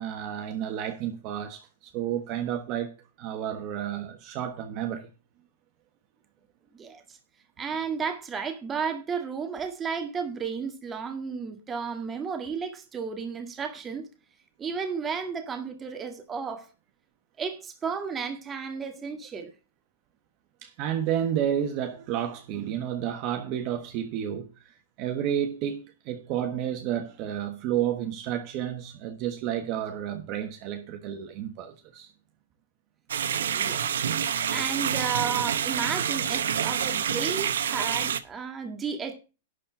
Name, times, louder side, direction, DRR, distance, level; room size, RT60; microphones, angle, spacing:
voice 1, 0.0-2.9 3.2-5.1 20.6-32.1, right 10 dB, 40° right, 1.3 m, -31 dB
voice 2, 7.6-14.1 14.6-16.7 17.4-19.5 33.5-33.9 34.5-39.2, right 6 dB, 15° right, 1.8 m, -33 dB
sound 1, 33.1-38.2, right 8 dB, 85° right, 0.9 m, -27 dB
11.5 x 4.3 x 7.6 m
hypercardioid pair, 145°, 0 cm